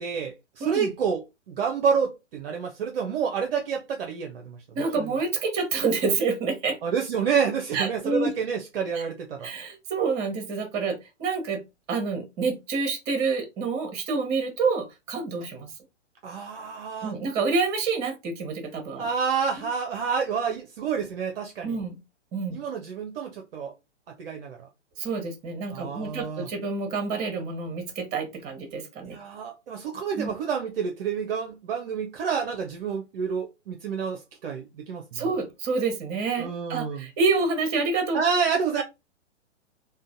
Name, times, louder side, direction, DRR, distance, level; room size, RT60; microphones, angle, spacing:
voice 1, 0.0-4.6 5.0-5.1 6.8-9.5 16.2-17.1 19.0-21.8 22.5-23.7 24.2-24.6 25.7-26.5 29.0-35.2 36.4-37.1 38.1-38.8, right 6 dB, 55° right, 0.6 m, -29 dB
voice 2, 4.7-6.8 7.7-8.3 8.9-9.0 9.4-11.6 11.9-15.7 17.0-19.1 19.6-19.7 21.6-22.0 22.3-22.6 25.0-29.2 30.2-30.3 35.1-38.2 38.8-38.9, right 4 dB, 25° right, 1.0 m, -28 dB
3.7 x 2.1 x 2.6 m
figure-of-eight pair, 120°, 36 cm